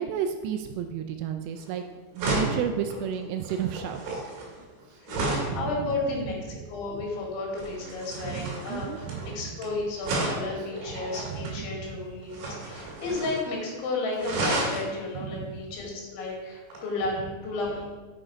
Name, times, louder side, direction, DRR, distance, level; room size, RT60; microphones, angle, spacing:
voice 1, 0.0-1.8 2.1-4.2 5.2-5.6 8.2-9.4 11.2-11.7 15.2-15.5, right 8 dB, 85° right, 6 dB, 2.6 m, -32 dB
sound 1, 1.6-1.8 2.2-5.6 7.6-9.6 10.0-11.6 12.3-13.5 13.7-13.8 14.2-14.9 16.7-16.8, right 2 dB, 65° right, 3.9 m, -32 dB
voice 2, 4.9-8.9 9.3-18.0, left 2 dB, 85° left, -3 dB, 4.4 m, -33 dB
7.7 x 6.1 x 5.1 m, 1.3 s
omnidirectional pair, 5.2 m